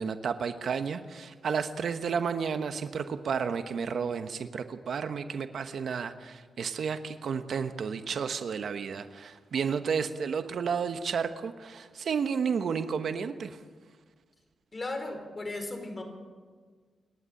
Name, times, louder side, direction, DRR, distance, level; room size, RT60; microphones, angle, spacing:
voice 1, 0.0-13.6, right 6 dB, 70° right, 9 dB, 1.1 m, -32 dB
voice 2, 14.7-16.0, left 2 dB, 30° left, 5 dB, 4.8 m, -36 dB
28.5 x 11.5 x 9.0 m, 1.5 s
cardioid pair, 90°, 0 cm